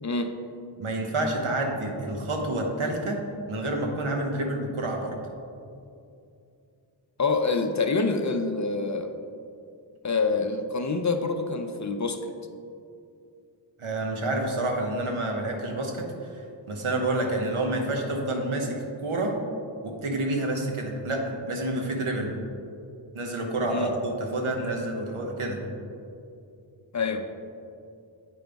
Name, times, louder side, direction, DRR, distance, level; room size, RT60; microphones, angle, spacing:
voice 1, 0.0-0.3 7.2-9.1 10.0-12.3 23.7-23.9 26.9-27.3, left 3 dB, 40° left, 7 dB, 0.5 m, -26 dB
voice 2, 0.8-3.2 3.5-5.1 13.8-19.3 19.8-22.3 23.1-25.6, right 1 dB, 80° right, 1 dB, 1.1 m, -28 dB
8.4 x 5.1 x 3.5 m, 2.5 s
cardioid pair, 45°, 49 cm